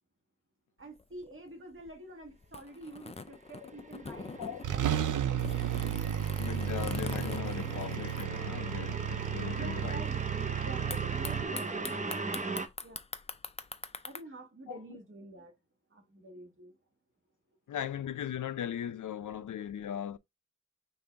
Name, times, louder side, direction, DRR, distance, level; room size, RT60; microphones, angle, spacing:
sound 1, 0.8-8.9 9.2-9.3 9.4-9.9 10.9-14.2, left 4 dB, 20° left, 0.4 m, -43 dB
voice 1, 0.8-5.0 9.5-10.1 10.6-12.5 12.8-13.0 14.0-15.5 15.9-16.7, right 2 dB, 45° right, 1.5 m, -48 dB
sound 2, 3.5-12.7, right 3 dB, 25° right, 0.7 m, -40 dB
sound 3, 4.2-4.3 4.6-11.4, right 10 dB, 90° right, 0.5 m, -33 dB
voice 2, 6.4-10.0 14.7-14.8 17.7-20.2, left 10 dB, 85° left, 0.5 m, -38 dB
5.3 x 2.6 x 3.4 m
wide cardioid pair, 95°, 30 cm